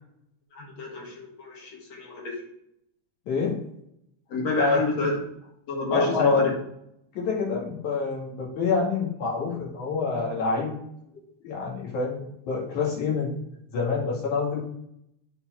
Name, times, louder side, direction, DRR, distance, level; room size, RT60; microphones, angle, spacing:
voice 1, 0.5-2.4 4.3-5.2 5.7-6.5, left 2 dB, 65° left, -2 dB, 2.8 m, -29 dB
voice 2, 3.3-3.6 4.6-4.8 5.9-6.5 7.2-10.7 11.4-13.3 13.7-14.6, left 4 dB, 80° left, -3 dB, 3.6 m, -26 dB
7.5 x 4.6 x 4.5 m, 0.76 s
omnidirectional pair, 3.4 m